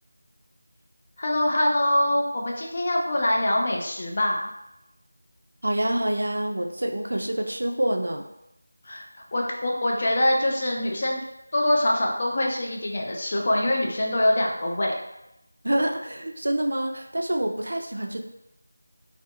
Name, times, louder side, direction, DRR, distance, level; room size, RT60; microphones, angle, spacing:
voice 1, 1.2-4.4 8.8-9.0 9.3-11.2 11.5-14.9, left 1 dB, 40° left, -1 dB, 0.4 m, -24 dB
voice 2, 5.6-8.2 15.6-18.2, right 1 dB, 60° right, 3 dB, 0.3 m, -26 dB
2.6 x 2.3 x 2.3 m, 0.87 s
figure-of-eight pair, 170°, 0 cm